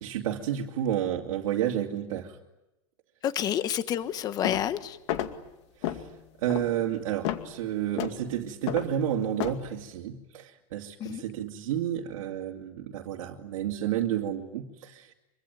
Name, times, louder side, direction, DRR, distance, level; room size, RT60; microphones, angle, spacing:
voice 1, 0.0-2.4 5.8-6.1 6.4-15.1, right 10 dB, 75° right, 0 dB, 2.6 m, -31 dB
voice 2, 3.2-5.0 11.0-11.2, left 10 dB, 20° left, 12 dB, 1.2 m, -29 dB
sound 1, 4.4-4.7 5.1-5.4 5.8-6.1 6.5-6.7 7.2-7.5 8.0-8.2 8.7-8.9 9.4-9.6, left 12 dB, 55° left, 2.4 m, -31 dB
26.0 x 24.5 x 9.3 m, 0.95 s
supercardioid pair, 170°, 17 cm